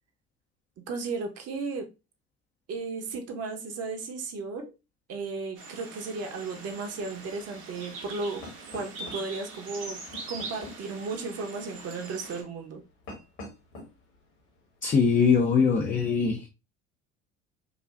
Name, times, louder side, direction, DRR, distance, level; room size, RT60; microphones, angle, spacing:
voice 1, 0.8-1.9 2.7-4.7 5.1-8.4 8.7-12.8, right 4 dB, 40° right, 0.9 m, -35 dB
sound 1, 5.6-12.4, right 3 dB, 65° right, 1.2 m, -42 dB
sound 2, 6.4-15.0, left 2 dB, 65° left, 1.8 m, -49 dB
voice 2, 14.8-16.5, left 5 dB, 20° left, 0.5 m, -22 dB
4.9 x 2.3 x 2.3 m
figure-of-eight pair, 60°, 37 cm